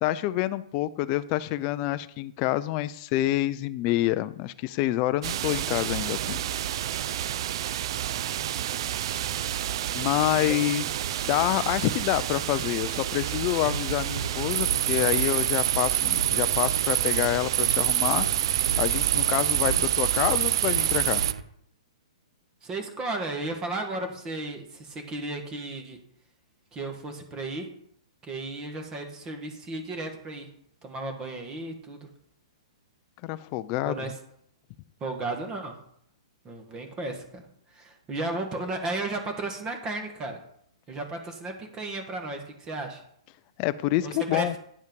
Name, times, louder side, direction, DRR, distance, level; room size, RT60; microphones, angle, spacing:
voice 1, 0.0-6.4 9.9-10.8 11.2-18.3 18.8-21.2 33.2-33.9 43.6-44.5, left 15 dB, 30° left, 13 dB, 0.4 m, -27 dB
sound 1, 5.2-21.3, right 12 dB, 55° right, 0.4 m, -27 dB
sound 2, 13.7-21.4, right 4 dB, 80° right, 0.9 m, -36 dB
voice 2, 22.6-26.0 26.7-27.7 28.2-30.5 30.8-32.1 33.8-34.2 35.0-35.7 36.4-37.4 37.7-40.4 40.9-43.0 44.0-44.6, right 2 dB, 20° right, 4 dB, 1.3 m, -34 dB
9.5 x 5.4 x 5.2 m, 0.68 s
hypercardioid pair, 150°, 3 cm